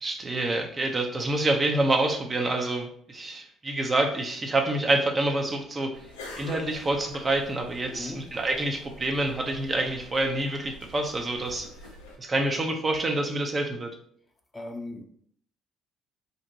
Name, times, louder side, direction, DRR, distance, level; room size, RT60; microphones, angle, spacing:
voice 1, 0.0-5.9 6.4-11.7 12.2-13.9, right 2 dB, 30° right, 3 dB, 0.5 m, -27 dB
sound 1, 5.9-12.2, left 2 dB, 85° left, 0.4 m, -46 dB
voice 2, 7.9-8.2 14.5-15.0, left 2 dB, 20° left, 3 dB, 0.5 m, -38 dB
2.6 x 2.1 x 2.6 m, 0.62 s
hypercardioid pair, 55°, 0 cm